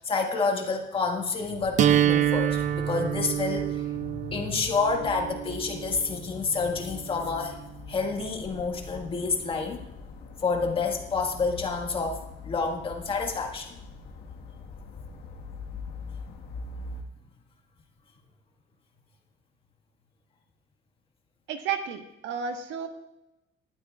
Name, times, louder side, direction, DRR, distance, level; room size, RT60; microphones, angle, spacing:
voice 1, 0.0-7.6 7.9-9.8 10.4-13.7, left 4 dB, 25° left, 2 dB, 1.7 m, -29 dB
sound 1, 1.6-17.0, left 4 dB, 50° left, 1.6 m, -43 dB
sound 2, 1.8-7.7, right 10 dB, 40° right, 0.5 m, -27 dB
voice 2, 21.5-22.9, right 6 dB, 70° right, 5 dB, 1.4 m, -32 dB
19.0 x 13.0 x 2.4 m, 0.89 s
cardioid pair, 165°, 20 cm